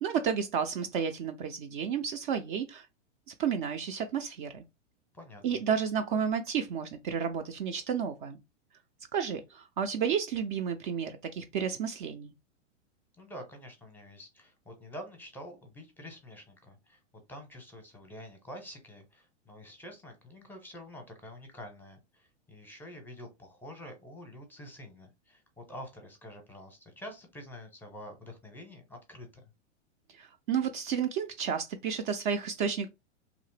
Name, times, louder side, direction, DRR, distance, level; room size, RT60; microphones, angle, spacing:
voice 1, 0.0-2.9 3.4-4.6 5.4-8.4 9.1-12.3 30.1-32.9, right 7 dB, 45° right, 0.4 m, -31 dB
voice 2, 5.1-5.6 13.2-17.0 17.3-29.5, equal, 5° left, 0.7 m, -47 dB
2.8 x 2.0 x 3.2 m
hypercardioid pair, 120°, 35 cm